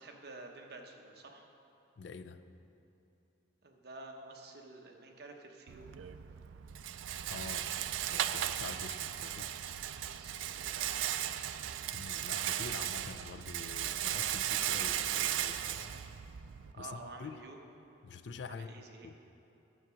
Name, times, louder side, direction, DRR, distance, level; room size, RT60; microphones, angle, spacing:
voice 1, 0.0-1.5 3.6-5.9 10.2-11.2 16.7-17.6 18.5-19.1, right 2 dB, 55° right, 2 dB, 1.0 m, -50 dB
voice 2, 2.0-2.4 7.3-7.7 8.1-9.5 11.9-16.0 16.8-17.4 18.0-19.2, left 5 dB, 65° left, 10 dB, 0.4 m, -46 dB
Rattle, 5.7-16.7, right 11 dB, 80° right, 0.4 m, -36 dB
10.0 x 7.8 x 6.2 m, 2.8 s
head